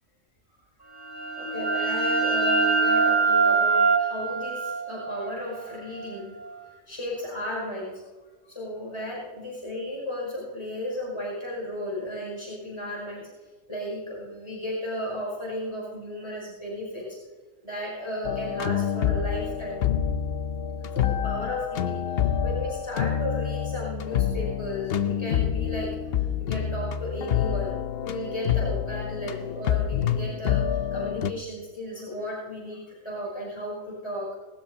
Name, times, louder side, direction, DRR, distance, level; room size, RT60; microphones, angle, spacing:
sound 1, 1.0-6.5, right 4 dB, 15° right, 2.3 m, -24 dB
voice 1, 1.4-8.0 8.5-13.3 13.7-17.2 17.6-19.9 20.8-34.3, left 1 dB, 20° left, -4 dB, 5.8 m, -34 dB
sound 2, 18.2-31.3, left 9 dB, 55° left, 0.8 m, -27 dB
19.5 x 19.0 x 2.8 m, 1.4 s
omnidirectional pair, 1.4 m